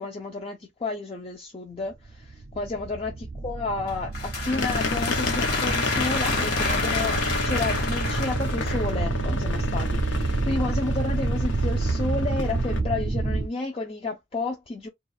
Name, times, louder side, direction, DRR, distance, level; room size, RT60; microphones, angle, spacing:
voice 1, 0.0-14.9, left 3 dB, 30° left, 0.4 m, -31 dB
sound 1, 2.0-13.5, right 3 dB, 40° right, 0.4 m, -28 dB
sound 2, 3.9-9.0, left 4 dB, 55° left, 1.2 m, -30 dB
sound 3, 4.5-12.8, left 3 dB, 70° left, 0.7 m, -31 dB
2.5 x 2.4 x 4.1 m
head